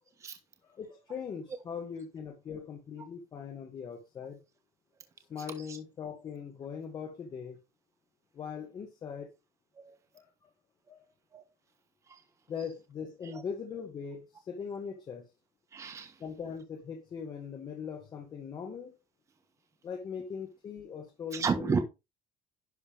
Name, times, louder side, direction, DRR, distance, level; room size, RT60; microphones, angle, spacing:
voice 1, 0.7-4.4 5.3-7.6 8.3-9.3 10.1-10.3 10.9-11.1 12.5-15.2 16.2-18.9 19.8-21.8, left 6 dB, 25° left, 1.4 m, -40 dB
voice 2, 15.7-16.2 21.3-21.8, right 5 dB, 20° right, 1.2 m, -33 dB
11.0 x 6.6 x 3.4 m
cardioid pair, 180°, 16 cm